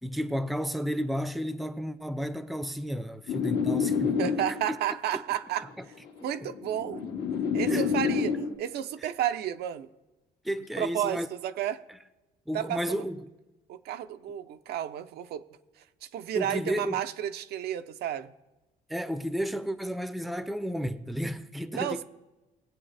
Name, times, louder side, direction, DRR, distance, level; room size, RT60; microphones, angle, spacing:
voice 1, 0.0-4.4 5.1-5.2 5.8-5.9 6.4-6.5 7.7-8.2 9.0-9.1 10.4-11.3 12.5-13.3 16.3-17.0 18.9-22.0, equal, ahead, 0.6 m, -32 dB
sound 1, 3.3-4.8 5.8-8.5, left 6 dB, 80° left, 1.8 m, -28 dB
voice 2, 4.2-5.7 6.2-7.0 7.5-9.9 10.8-11.8 12.5-13.0 13.7-15.4 16.1-18.3 21.7-22.0, right 10 dB, 70° right, 0.6 m, -32 dB
20.5 x 8.0 x 3.3 m
cardioid pair, 110°, 17 cm